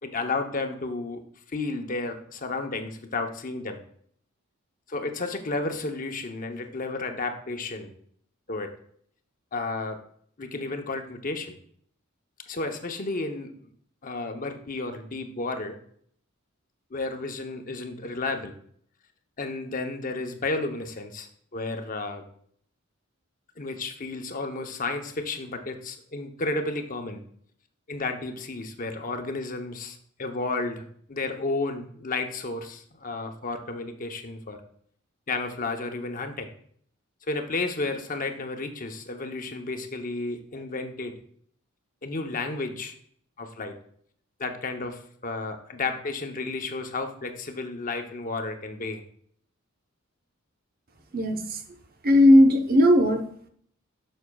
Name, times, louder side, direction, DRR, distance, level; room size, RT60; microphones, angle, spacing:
voice 1, 0.0-3.8 4.9-7.9 8.5-8.7 9.5-10.0 10.4-11.6 12.5-13.5 14.0-15.8 16.9-18.5 19.4-22.2 23.6-27.2 27.9-34.6 35.3-36.5 37.3-41.1 42.0-42.9 43.4-43.7 44.4-49.0, left 3 dB, 40° left, 5 dB, 0.8 m, -32 dB
voice 2, 52.0-53.5, left 1 dB, 45° right, 6 dB, 0.8 m, -17 dB
9.5 x 6.4 x 2.3 m, 0.62 s
head